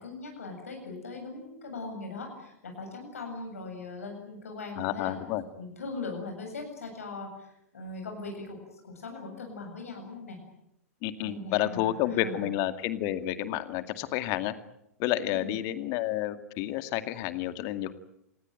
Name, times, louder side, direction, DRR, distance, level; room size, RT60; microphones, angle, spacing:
voice 1, 0.0-5.2 5.6-8.6 8.8-10.4 11.2-12.5 15.3-15.6, left 3 dB, 70° left, 3 dB, 7.7 m, -40 dB
voice 2, 4.8-5.4 11.0-14.5 15.0-17.9, left 13 dB, 40° left, 11 dB, 2.2 m, -30 dB
27.5 x 19.5 x 9.4 m, 0.79 s
figure-of-eight pair, 95°, 8 cm